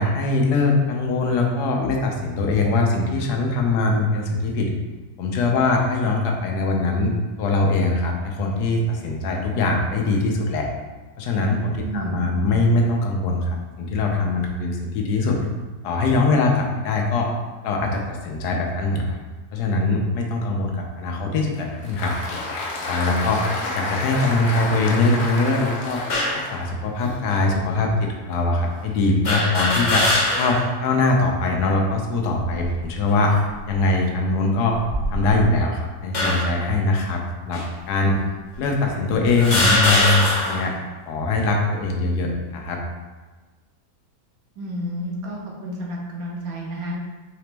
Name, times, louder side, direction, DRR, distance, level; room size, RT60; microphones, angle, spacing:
voice 1, 0.0-4.7 5.2-7.1 7.4-10.7 11.2-15.4 15.8-17.3 17.6-19.2 19.5-22.1 22.9-23.5 23.7-26.0 26.3-33.4 33.7-34.8 35.1-38.2 38.6-40.7 41.0-42.8, left 2 dB, 85° left, 1 dB, 1.2 m, -22 dB
voice 2, 11.8-12.2 44.6-47.0, equal, 70° right, -3 dB, 1.2 m, -31 dB
Applause, 21.5-27.9, left 2 dB, 65° left, 1.0 m, -30 dB
sound 1, 26.1-26.5 27.3-27.4 29.2-30.7 31.1-31.2 32.4-32.8 33.5-33.8 34.7-35.5 36.1-36.6 37.5-37.7 38.5-38.6 39.4-40.7, left 1 dB, 45° left, 0.6 m, -22 dB
4.1 x 2.9 x 3.3 m, 1.3 s
omnidirectional pair, 1.7 m